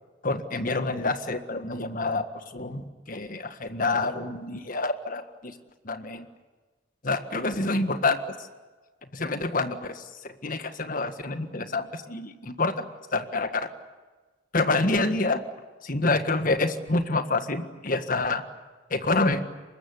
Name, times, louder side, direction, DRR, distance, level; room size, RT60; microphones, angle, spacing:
voice 1, 0.2-5.6 5.8-6.3 7.0-8.5 9.1-12.9 13.1-13.7 14.5-15.4 15.8-18.4 18.9-19.4, left 3 dB, 45° left, 9 dB, 1.7 m, -27 dB
25.0 x 21.5 x 9.7 m, 1.3 s
head